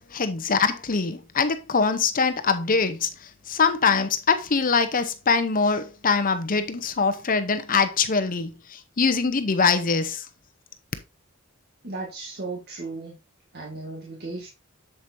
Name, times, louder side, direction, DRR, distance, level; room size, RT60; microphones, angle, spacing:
voice 1, 0.1-10.3, left 5 dB, 40° left, 0.8 m, -23 dB
voice 2, 11.8-13.2 13.5-14.5, right 3 dB, 55° right, 2.0 m, -35 dB
8.0 x 7.5 x 2.6 m
head